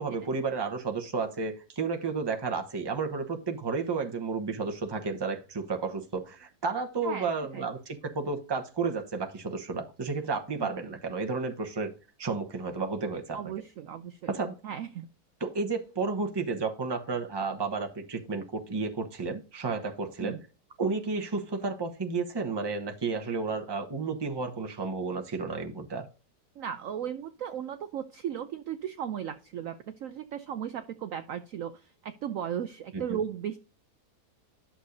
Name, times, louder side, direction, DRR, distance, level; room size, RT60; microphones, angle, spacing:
voice 1, 0.0-11.9 12.2-13.4 14.3-14.5 15.4-20.4 20.8-26.1 32.9-33.2, right 4 dB, 20° right, 0.8 m, -32 dB
voice 2, 7.0-7.7 10.6-10.7 13.3-14.3 14.6-15.1 20.2-20.4 26.6-31.7 32.0-33.6, right 9 dB, 65° right, 0.8 m, -36 dB
11.5 x 6.6 x 2.7 m
omnidirectional pair, 1.8 m